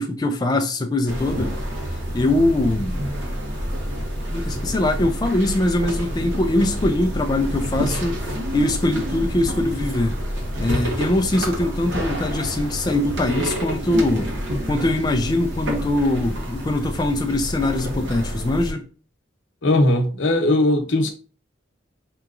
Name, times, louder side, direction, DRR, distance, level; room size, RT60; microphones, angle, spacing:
voice 1, 0.0-1.5 2.1-3.0 4.3-8.1 8.5-10.1 10.6-14.3 14.7-18.8, left 1 dB, 20° left, 0.3 m, -22 dB
sound 1, 1.1-18.7, equal, 80° right, 1.0 m, -28 dB
voice 2, 19.6-21.1, left 1 dB, 80° left, 0.8 m, -18 dB
4.7 x 2.9 x 2.4 m
head